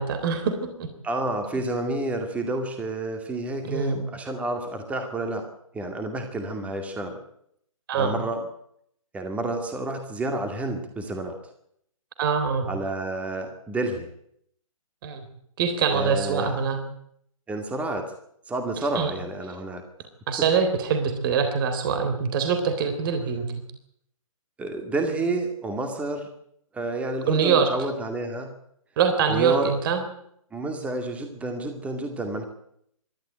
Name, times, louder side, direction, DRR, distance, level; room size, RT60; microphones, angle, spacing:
voice 1, 0.0-0.9 3.7-4.0 7.9-8.1 12.2-12.7 15.0-15.2 15.6-16.8 19.0-19.1 20.3-23.5 27.3-27.7 29.0-30.0, right 6 dB, 40° right, 8 dB, 3.7 m, -24 dB
voice 2, 1.0-5.5 5.7-7.2 8.0-8.5 9.1-11.4 12.7-14.1 15.9-16.6 17.5-18.1 18.5-19.8 24.6-26.3 26.7-28.5 29.3-29.7 30.5-32.4, right 2 dB, 5° right, 5 dB, 2.3 m, -29 dB
25.0 x 12.5 x 8.8 m, 0.71 s
hypercardioid pair, 145°, 18 cm